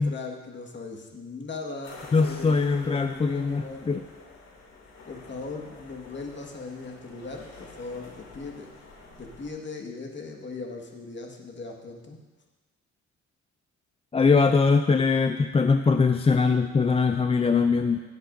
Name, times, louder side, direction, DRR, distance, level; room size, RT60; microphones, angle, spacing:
voice 1, 0.0-3.9 5.1-8.7 9.2-12.2 17.9-18.0, left 3 dB, 40° left, 0 dB, 1.7 m, -39 dB
sound 1, 1.8-9.5, left 3 dB, 60° left, 2.7 m, -48 dB
voice 2, 2.1-4.0 14.1-18.0, left 4 dB, 20° left, 7 dB, 0.4 m, -22 dB
16.5 x 8.1 x 2.6 m, 1.3 s
cardioid pair, 90°, 30 cm